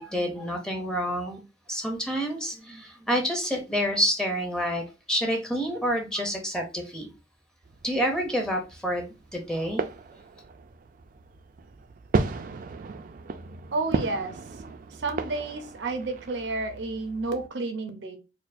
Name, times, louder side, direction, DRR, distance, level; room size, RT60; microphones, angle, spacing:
voice 1, 0.0-1.4 1.7-4.8 5.1-7.1 7.8-9.8, equal, 5° left, 2 dB, 0.5 m, -28 dB
sound 1, 7.6-17.5, right 4 dB, 50° right, 0.3 m, -35 dB
voice 2, 13.7-14.3 15.0-18.2, right 3 dB, 90° right, 7 dB, 0.6 m, -30 dB
4.3 x 2.3 x 2.5 m, 0.28 s
head